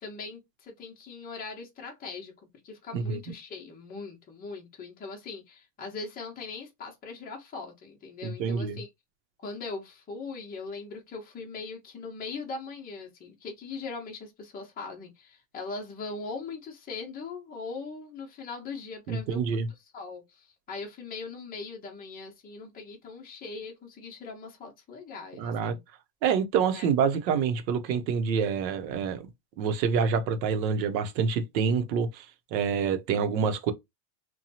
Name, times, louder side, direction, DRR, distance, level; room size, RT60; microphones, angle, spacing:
voice 1, 0.0-2.3 2.6-8.9 9.4-19.4 19.9-25.8 26.7-26.9, left 4 dB, 20° left, 0.8 m, -40 dB
voice 2, 8.2-8.8 19.1-19.7 25.4-25.8 26.2-29.3 29.6-32.3 32.5-33.7, right 6 dB, 80° right, 0.8 m, -27 dB
2.8 x 2.2 x 2.6 m
supercardioid pair, 140°, 50 cm